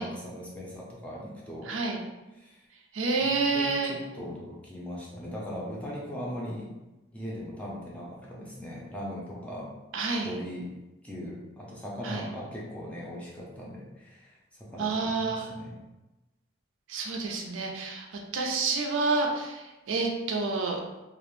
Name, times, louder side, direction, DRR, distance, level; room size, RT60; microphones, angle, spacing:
voice 1, 0.0-1.7 2.4-2.6 3.2-6.7 7.1-9.7 10.2-10.7 11.0-15.8, equal, 5° left, -5 dB, 0.4 m, -39 dB
voice 2, 1.7-2.0 2.9-3.9 9.9-10.4 12.0-12.2 14.8-15.5 16.9-18.1 18.3-20.8, right 3 dB, 80° right, 1 dB, 0.4 m, -29 dB
2.4 x 2.0 x 3.0 m, 1.1 s
head